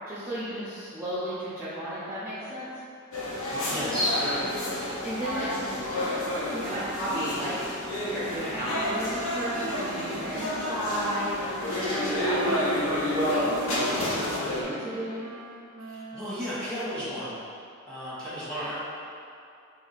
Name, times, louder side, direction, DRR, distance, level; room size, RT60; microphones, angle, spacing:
voice 1, 0.0-2.7 5.0-6.1 6.5-7.6 7.9-11.5 11.9-15.3, right 1 dB, 10° right, -12 dB, 0.7 m, -34 dB
sound 1, 3.1-14.6, left 1 dB, 75° left, 0.8 m, -30 dB
voice 2, 3.5-4.4 15.9-17.3 17.9-18.7, equal, 5° left, -12 dB, 1.3 m, -32 dB
Wind instrument woodwind instrument, 7.9-17.0, right 1 dB, 80° right, 0.5 m, -41 dB
3.5 x 2.8 x 4.0 m, 2.5 s
head